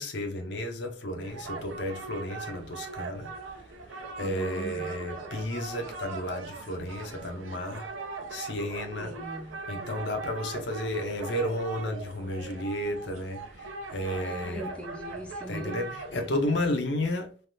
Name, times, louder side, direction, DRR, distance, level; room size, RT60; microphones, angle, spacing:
voice 1, 0.0-3.3 3.9-9.2 9.7-14.7 15.5-17.3, left 1 dB, 65° left, 0.6 m, -32 dB
sound 1, 1.2-16.6, right 3 dB, 90° right, 0.6 m, -40 dB
voice 2, 4.2-4.9 9.0-9.6 14.1-15.8, equal, 5° left, 0.4 m, -40 dB
3.3 x 2.3 x 2.7 m
head